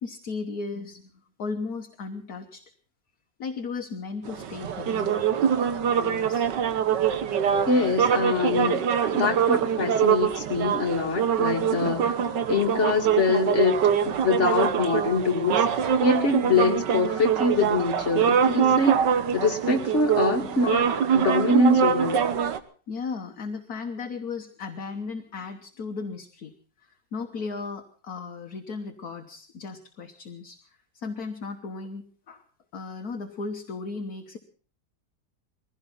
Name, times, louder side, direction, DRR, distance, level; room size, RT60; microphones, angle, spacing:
voice 1, 0.0-2.6 3.4-5.2 5.9-6.5 11.8-11.9 20.4-20.5 22.9-26.5 26.8-32.4 32.7-34.4, left 4 dB, 60° left, 4 dB, 1.7 m, -36 dB
sound 1, 4.2-22.6, right 8 dB, 80° right, 1.7 m, -24 dB
voice 2, 7.7-8.8 9.1-12.1 12.5-13.8 14.1-15.6 16.0-19.0 19.3-22.2, left 3 dB, 40° left, 2 dB, 2.4 m, -24 dB
21.5 x 16.0 x 4.0 m, 0.40 s
omnidirectional pair, 1.9 m